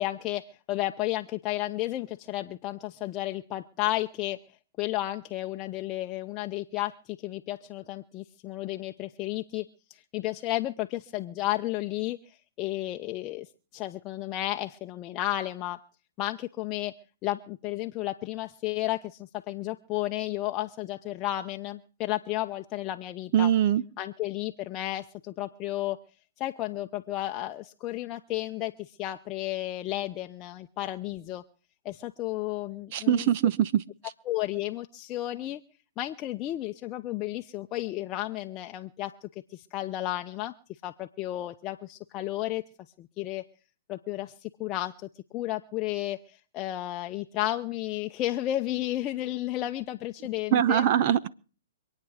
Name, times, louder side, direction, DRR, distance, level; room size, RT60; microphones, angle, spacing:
voice 1, 0.0-4.4 4.8-15.8 16.2-16.9 17.2-23.5 24.0-26.0 26.4-31.4 31.8-33.3 34.3-35.6 36.0-40.5 40.8-42.6 43.0-43.4 43.9-50.8, left 15 dB, 30° left, 0.8 m, -33 dB
voice 2, 23.3-23.8 32.9-33.8 50.5-51.3, right 10 dB, 45° right, 0.8 m, -22 dB
26.0 x 9.3 x 4.9 m
hypercardioid pair, 135°, 0 cm